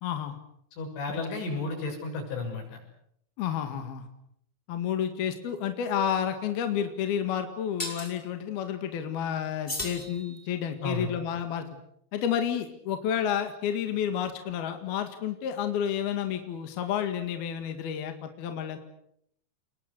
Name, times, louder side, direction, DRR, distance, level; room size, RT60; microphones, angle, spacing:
voice 1, 0.0-0.4 1.1-1.2 3.4-4.1 4.7-11.7 12.1-18.8, left 9 dB, 60° left, 7 dB, 3.6 m, -30 dB
voice 2, 0.7-2.8 10.8-11.1, left 3 dB, 80° left, 3 dB, 9.1 m, -33 dB
sound 1, 7.8-8.1 9.7-10.8, left 1 dB, 10° left, 7.0 m, -36 dB
29.5 x 21.5 x 8.2 m, 0.72 s
omnidirectional pair, 5.4 m